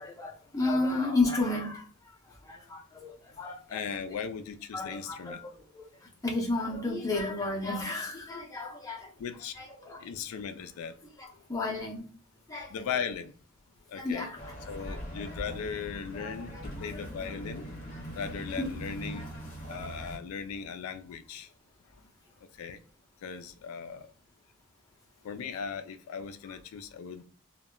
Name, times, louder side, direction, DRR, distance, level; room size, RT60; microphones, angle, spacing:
voice 1, 0.0-1.8 2.5-3.1 3.4-3.8 4.7-5.8 6.2-9.1 9.6-10.0 11.2-12.0 12.5-12.7 13.9-14.5 16.1-16.9 17.3-17.4 18.6-18.7 19.1-19.3 20.0-20.1, left 2 dB, 15° left, 0.6 m, -32 dB
voice 2, 3.7-5.4 9.2-9.5 10.0-11.0 11.4-11.5 12.7-13.3 13.9-14.3 14.7-17.7 18.1-19.3 19.7-21.5 22.6-22.8 23.2-24.1 25.2-27.2, left 6 dB, 70° left, 0.3 m, -38 dB
sound 1, 14.4-20.2, equal, 35° left, 0.9 m, -41 dB
2.2 x 2.1 x 3.5 m
head